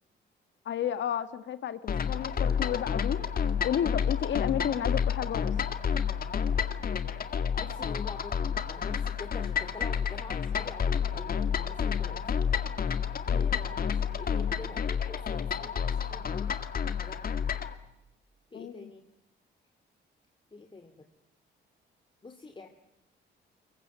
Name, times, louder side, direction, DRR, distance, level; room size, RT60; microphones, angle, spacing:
voice 1, 0.7-3.3 3.6-5.5 13.3-13.6 18.5-18.9, left 9 dB, 70° left, 11 dB, 1.7 m, -32 dB
sound 1, 1.9-17.7, left 7 dB, 50° left, 2.1 m, -30 dB
voice 2, 2.5-2.9 7.5-12.5 13.3-17.2 18.5-19.1 20.5-21.1 22.2-22.7, left 3 dB, 25° left, 6 dB, 2.4 m, -46 dB
23.5 x 23.0 x 9.5 m, 0.90 s
cardioid pair, 90°, 20 cm